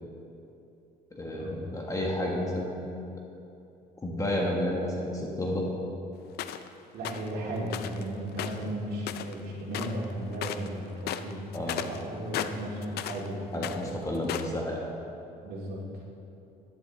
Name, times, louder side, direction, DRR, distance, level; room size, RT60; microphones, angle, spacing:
voice 1, 1.1-2.9 4.0-5.7 11.5-11.8 13.5-14.8, left 1 dB, 20° left, -2 dB, 1.6 m, -31 dB
sound 1, 6.4-6.7 7.0-7.3 7.7-8.0 8.3-9.4 9.7-10.1 10.3-10.7 11.0-13.3 13.5-14.6, left 11 dB, 70° left, 0.5 m, -35 dB
voice 2, 6.9-11.4 11.8-13.7 15.4-15.8, right 1 dB, 70° right, -3 dB, 2.4 m, -35 dB
12.0 x 10.5 x 3.5 m, 2.7 s
cardioid pair, 110°, 17 cm